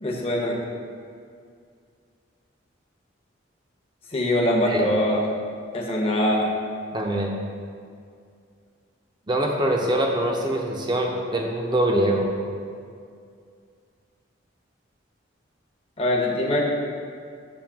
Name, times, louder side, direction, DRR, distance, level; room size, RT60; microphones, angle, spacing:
voice 1, 0.0-0.6 4.1-5.2 5.7-6.5 16.0-16.6, left 1 dB, 30° left, -2 dB, 0.8 m, -22 dB
voice 2, 6.9-7.3 9.3-12.3, right 1 dB, 20° right, 1 dB, 0.6 m, -23 dB
7.0 x 2.8 x 5.9 m, 2.2 s
head